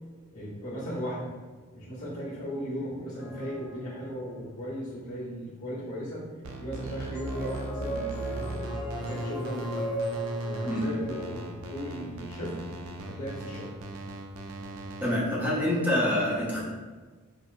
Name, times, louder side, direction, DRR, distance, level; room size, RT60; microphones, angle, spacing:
voice 1, 0.3-1.3 1.7-6.3 6.6-9.9 10.4-12.6 13.1-13.8, equal, 90° left, -8 dB, 1.2 m, -37 dB
sound 1, 3.2-4.5 6.8-12.1, equal, 65° left, 0.6 m, -37 dB
sound 2, 6.4-15.2, right 2 dB, 75° right, 0.4 m, -38 dB
voice 2, 15.0-16.6, left 1 dB, 10° right, -8 dB, 0.7 m, -26 dB
4.4 x 2.0 x 2.5 m, 1.4 s
head